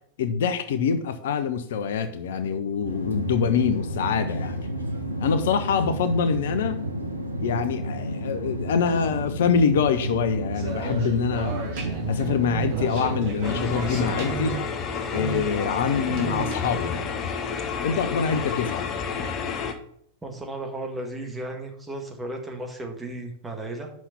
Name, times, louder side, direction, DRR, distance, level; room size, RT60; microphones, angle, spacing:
voice 1, 0.2-4.6 5.2-6.8 7.4-11.6 12.1-14.6 15.1-17.0 17.8-18.9, left 6 dB, 60° left, 0.7 m, -25 dB
sound 1, 2.8-13.7, right 1 dB, 85° right, 1.0 m, -31 dB
sound 2, 10.5-17.1, right 4 dB, 50° right, 2.0 m, -33 dB
sound 3, 13.4-19.7, left 6 dB, 30° left, 1.0 m, -30 dB
voice 2, 20.2-23.9, right 1 dB, 10° right, 1.7 m, -34 dB
6.2 x 5.7 x 6.9 m
figure-of-eight pair, 90°, 0 cm